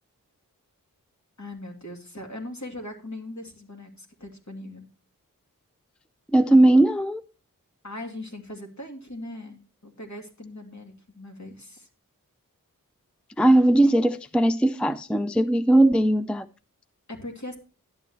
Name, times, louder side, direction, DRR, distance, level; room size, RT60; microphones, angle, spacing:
voice 1, 1.4-4.8 6.5-6.6 7.8-11.9 17.1-17.6, left 1 dB, 55° left, 2.8 m, -39 dB
voice 2, 6.3-7.2 13.4-16.5, right 1 dB, 5° left, 0.4 m, -19 dB
11.5 x 9.5 x 3.1 m
wide cardioid pair, 65°, 35 cm